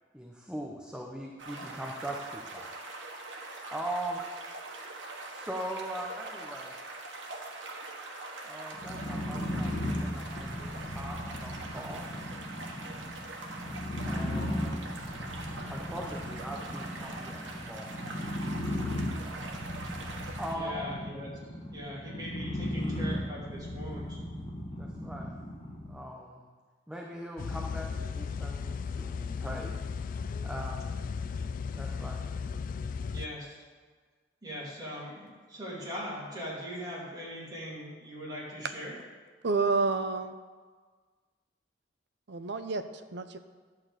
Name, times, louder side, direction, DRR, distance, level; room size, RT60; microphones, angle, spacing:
voice 1, 0.1-2.7 3.7-4.2 5.3-6.7 8.4-12.2 14.0-14.9 15.7-17.9 20.4-20.9 24.8-25.3 25.8-26.5 26.9-29.7 30.4-30.8 31.7-32.2, right 1 dB, 5° right, -2 dB, 0.8 m, -40 dB
sound 1, 1.4-20.6, right 2 dB, 90° right, 1.4 m, -43 dB
sound 2, 8.7-26.0, left 1 dB, 30° left, 1.4 m, -36 dB
voice 2, 20.5-21.3 21.7-24.2 33.1-33.6 34.4-38.9, equal, 20° right, -6 dB, 2.9 m, -40 dB
sound 3, 27.4-33.3, left 5 dB, 45° left, 0.3 m, -35 dB
voice 3, 39.4-40.3 42.3-42.8 43.1-43.4, right 4 dB, 65° right, 9 dB, 0.6 m, -29 dB
11.5 x 4.1 x 8.0 m, 1.5 s
head